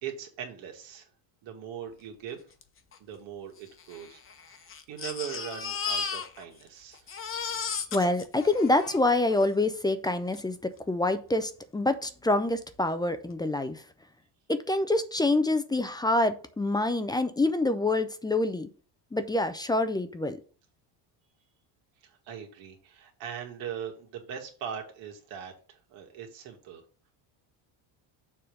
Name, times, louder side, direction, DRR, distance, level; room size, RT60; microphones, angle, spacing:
voice 1, 0.0-1.1 1.4-2.5 3.0-7.1 22.0-26.8, right 8 dB, 70° right, 2.2 m, -41 dB
Crying sobbing, 2.6-2.7 2.9-3.0 3.8-6.7 6.9-9.5 10.3-10.4 10.8-10.9, left 6 dB, 25° left, 0.9 m, -35 dB
voice 2, 7.9-13.8 14.5-18.7 19.1-20.4, left 2 dB, 10° left, 0.4 m, -26 dB
6.9 x 3.6 x 6.4 m
cardioid pair, 130°, 46 cm